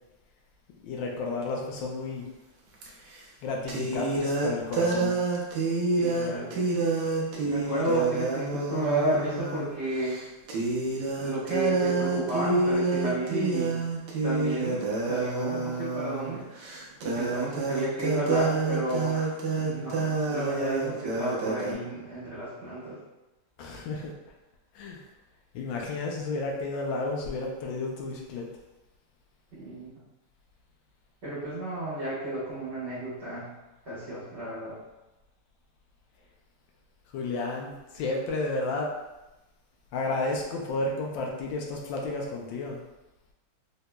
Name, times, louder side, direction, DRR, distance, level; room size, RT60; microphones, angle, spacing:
voice 1, 0.8-2.2 3.4-5.1 23.6-24.1 24.7-25.0 25.5-28.5 37.1-38.9 39.9-42.8, left 3 dB, 75° left, -1 dB, 1.2 m, -32 dB
sound 1, 2.8-2.9 3.7-9.7 10.0-10.2 10.5-21.7, right 3 dB, 70° right, 1.0 m, -28 dB
voice 2, 6.0-6.8 7.4-10.2 11.2-13.8 14.2-14.8 15.1-23.0 29.6-30.0 31.2-33.5 33.8-34.8, right 1 dB, 35° right, -13 dB, 1.3 m, -32 dB
3.9 x 2.8 x 2.2 m, 1.0 s
omnidirectional pair, 2.4 m